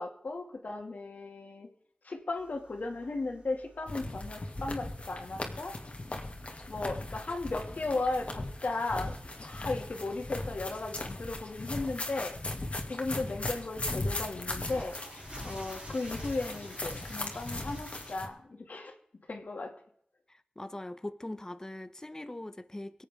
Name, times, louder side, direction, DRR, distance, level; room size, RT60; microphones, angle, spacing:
voice 1, 0.0-1.7 2.0-5.7 6.7-9.1 9.4-12.4 12.9-14.9 15.4-18.9 19.3-19.7, left 3 dB, 75° left, 2.3 m, -36 dB
sound 1, 2.4-18.1, right 1 dB, 45° right, 4.6 m, -54 dB
sound 2, 3.9-18.3, left 2 dB, 50° left, 2.2 m, -38 dB
voice 2, 20.3-23.0, left 1 dB, 20° left, 0.8 m, -41 dB
24.5 x 8.2 x 3.7 m
wide cardioid pair, 65°, 3 cm